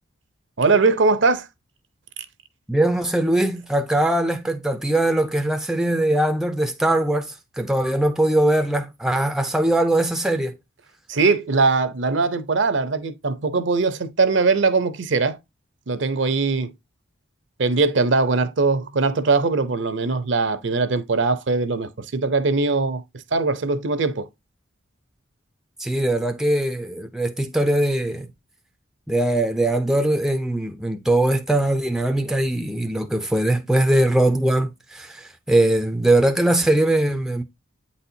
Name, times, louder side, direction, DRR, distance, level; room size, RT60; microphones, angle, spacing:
voice 1, 0.6-1.5 2.2-2.3 11.1-15.4 15.9-16.7 17.6-23.0 23.3-24.3, right 3 dB, 60° right, 0.6 m, -21 dB
voice 2, 2.7-10.6 25.8-28.3 29.1-37.4, right 1 dB, ahead, 0.4 m, -21 dB
8.5 x 4.2 x 2.7 m
head